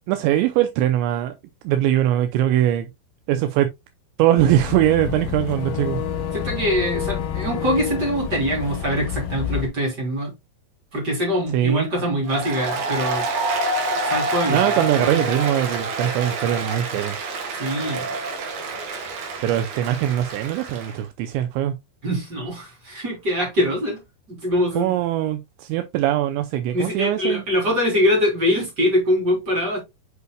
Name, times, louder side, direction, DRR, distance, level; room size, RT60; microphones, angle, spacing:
voice 1, 0.1-1.3 1.6-2.9 3.3-3.7 4.2-6.0 11.5-11.9 14.5-17.2 19.4-21.8 24.8-27.4, right 12 dB, 85° right, 2.9 m, -21 dB
Boat Water vehicle / Engine, 4.4-9.7, left 8 dB, 65° left, 2.9 m, -28 dB
voice 2, 6.3-10.3 10.9-13.2 14.1-15.3 17.5-18.0 22.0-24.0 24.4-25.0 26.7-29.8, equal, 25° right, 3.3 m, -23 dB
Applause, 12.3-21.0, right 2 dB, 65° right, 3.1 m, -27 dB
7.8 x 5.4 x 2.2 m
omnidirectional pair, 5.2 m